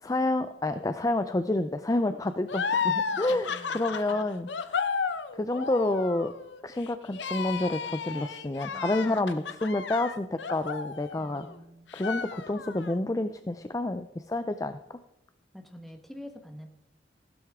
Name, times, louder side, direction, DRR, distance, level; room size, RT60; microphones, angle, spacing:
voice 1, 0.0-4.8 5.3-6.3 6.6-11.5 11.9-15.0, left 2 dB, 20° left, 10 dB, 0.4 m, -29 dB
sound 1, 2.5-11.5 11.9-12.9, left 5 dB, 80° left, 0.8 m, -33 dB
voice 2, 2.7-4.3 11.2-11.9 15.5-16.7, equal, ahead, 4 dB, 1.2 m, -47 dB
15.5 x 12.0 x 3.6 m, 0.93 s
head